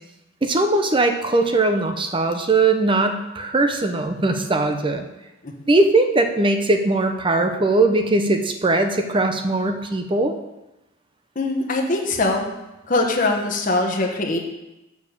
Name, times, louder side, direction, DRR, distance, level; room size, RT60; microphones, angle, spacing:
voice 1, 0.4-5.1 5.7-10.3, right 2 dB, 25° right, 6 dB, 0.6 m, -20 dB
voice 2, 11.3-12.5 12.9-14.4, left 2 dB, 40° left, 2 dB, 1.1 m, -22 dB
7.0 x 4.8 x 6.8 m, 0.98 s
head